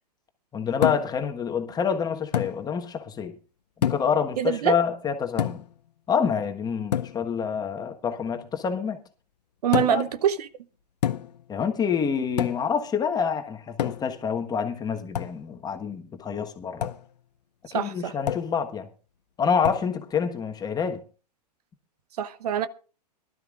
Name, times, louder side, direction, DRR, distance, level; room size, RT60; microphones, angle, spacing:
voice 1, 0.5-3.3 3.8-5.6 6.1-9.0 9.8-10.1 11.5-16.9 17.7-18.9 19.4-21.0, left 6 dB, 20° left, 1.4 m, -27 dB
sound 1, 0.8-1.2 2.3-2.6 3.8-4.2 5.4-5.8 6.9-7.2 9.7-10.1 11.0-11.4 12.4-12.7 13.8-14.2 15.1-15.4 16.8-17.0 18.3-18.6 19.6-19.9, left 10 dB, 80° left, 0.8 m, -28 dB
voice 2, 4.4-4.8 9.6-10.5 17.7-18.1 22.2-22.7, right 9 dB, 65° right, 0.9 m, -24 dB
22.0 x 12.5 x 2.5 m
hypercardioid pair, 115°, 21 cm